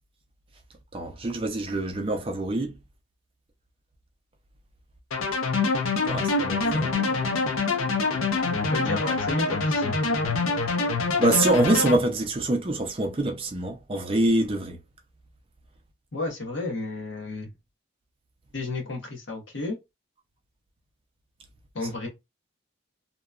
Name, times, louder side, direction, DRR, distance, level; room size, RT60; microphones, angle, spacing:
voice 1, 0.9-2.7 6.1-6.9 11.2-14.8, right 1 dB, 25° right, 0.4 m, -25 dB
sound 1, 5.1-12.0, left 3 dB, 90° left, 0.6 m, -25 dB
voice 2, 8.7-10.0 16.1-17.5 18.5-19.8 21.7-22.1, left 2 dB, 65° left, 0.9 m, -32 dB
2.8 x 2.2 x 2.3 m
head